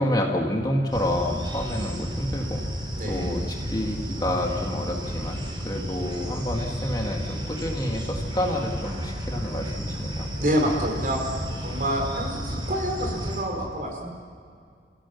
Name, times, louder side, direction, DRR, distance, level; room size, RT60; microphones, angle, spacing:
voice 1, 0.0-2.7 3.1-10.3, left 1 dB, 20° left, 1 dB, 2.0 m, -28 dB
sound 1, 0.9-13.4, equal, 25° right, 3.1 m, -32 dB
voice 2, 10.4-14.1, equal, 50° right, 1 dB, 4.7 m, -27 dB
30.0 x 16.0 x 7.2 m, 2.2 s
head